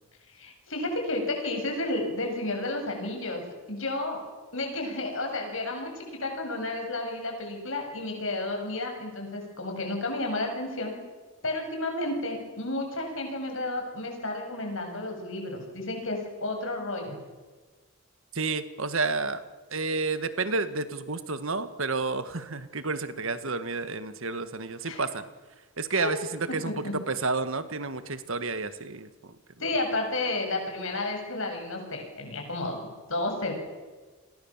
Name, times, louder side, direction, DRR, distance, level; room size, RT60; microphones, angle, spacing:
voice 1, 0.4-3.4 3.7-4.2 4.5-10.9 11.4-17.2 24.8-25.0 25.9-26.1 26.7-26.9 29.6-32.8 33.1-33.6, left 2 dB, 65° left, 3 dB, 7.6 m, -32 dB
voice 2, 18.3-19.4 19.7-25.2 25.8-29.3, right 3 dB, 65° right, 11 dB, 1.7 m, -30 dB
30.0 x 22.0 x 7.4 m, 1.4 s
head